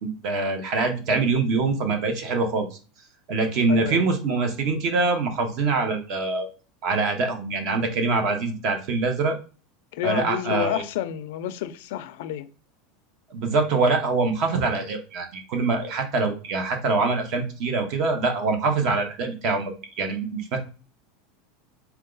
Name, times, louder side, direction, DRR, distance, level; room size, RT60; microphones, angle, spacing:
voice 1, 0.0-2.7 3.3-6.5 6.8-9.4 10.0-10.8 13.3-20.6, right 3 dB, 50° right, 1.1 m, -24 dB
voice 2, 3.7-4.1 9.9-12.5, left 11 dB, 70° left, 0.4 m, -30 dB
4.5 x 2.3 x 3.9 m
supercardioid pair, 150°, 0 cm